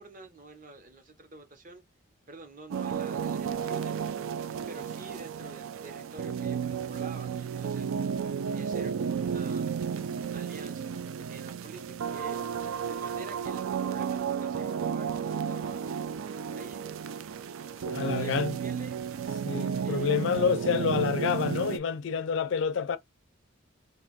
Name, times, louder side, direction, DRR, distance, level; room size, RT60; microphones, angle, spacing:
voice 1, 0.0-1.8 2.3-4.0 4.7-7.9 8.5-15.8 16.5-17.0 18.0-19.0 19.8-20.2, right 3 dB, 40° right, 0.9 m, -47 dB
sound 1, 2.7-21.8, right 7 dB, 85° right, 0.4 m, -33 dB
voice 2, 17.8-18.5 19.4-23.0, left 6 dB, 65° left, 0.4 m, -28 dB
2.5 x 2.4 x 4.0 m
head